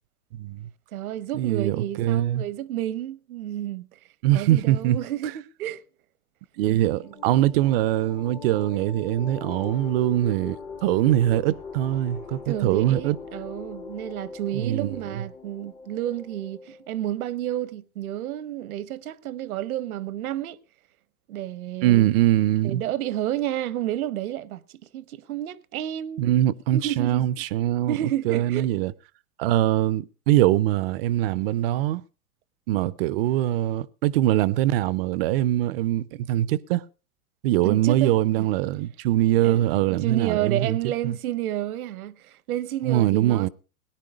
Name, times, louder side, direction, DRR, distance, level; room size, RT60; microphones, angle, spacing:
voice 1, 0.3-0.7 1.4-2.4 4.2-5.0 6.6-13.2 14.5-15.0 21.8-22.8 26.2-28.9 29.4-32.0 32.7-36.8 37.4-40.8 41.0-41.2 42.9-43.5, right 13 dB, 40° right, 0.6 m, -23 dB
voice 2, 0.9-4.0 4.3-5.8 6.7-6.8 7.0-7.1 12.4-20.6 21.3-22.1 22.6-24.6 24.9-26.2 26.7-27.3 27.9-28.6 37.6-38.1 39.4-43.5, right 12 dB, 70° right, 1.1 m, -30 dB
sound 1, 6.7-16.9, left 4 dB, 10° left, 0.6 m, -41 dB
18.0 x 10.5 x 5.0 m
hypercardioid pair, 135°, 44 cm